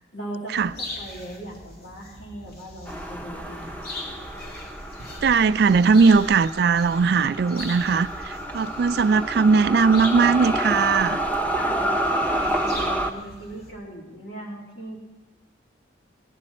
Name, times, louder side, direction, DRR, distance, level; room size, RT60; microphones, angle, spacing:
voice 1, 0.1-3.8 11.5-15.0, right 1 dB, 75° left, -3 dB, 3.5 m, -38 dB
sound 1, 0.5-13.7, left 2 dB, 55° left, 2.5 m, -41 dB
sound 2, 2.9-13.1, right 1 dB, 10° left, 0.7 m, -29 dB
voice 2, 5.2-11.2, right 5 dB, 55° right, 15 dB, 0.3 m, -19 dB
18.0 x 11.0 x 4.3 m, 1.1 s
head